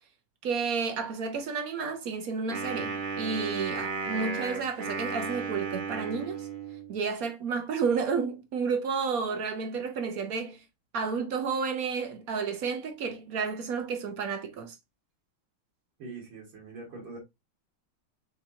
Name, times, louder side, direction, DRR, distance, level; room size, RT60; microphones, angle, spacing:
voice 1, 0.4-6.5 6.9-10.6 10.9-14.8, right 5 dB, 65° right, 0.8 m, -31 dB
Wind instrument woodwind instrument, 2.5-6.9, right 4 dB, 35° right, 0.8 m, -34 dB
voice 2, 16.0-17.2, right 3 dB, 80° right, 2.7 m, -43 dB
6.4 x 2.9 x 2.6 m
omnidirectional pair, 2.3 m